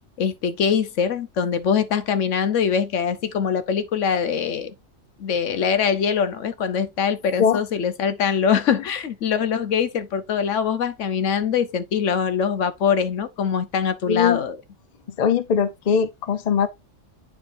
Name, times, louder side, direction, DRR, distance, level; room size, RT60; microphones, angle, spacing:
voice 1, 0.2-4.7 5.2-14.6, left 7 dB, 75° left, 1.1 m, -23 dB
voice 2, 14.1-14.4 15.2-16.7, left 7 dB, 40° left, 0.6 m, -20 dB
9.5 x 4.6 x 2.5 m
omnidirectional pair, 1.3 m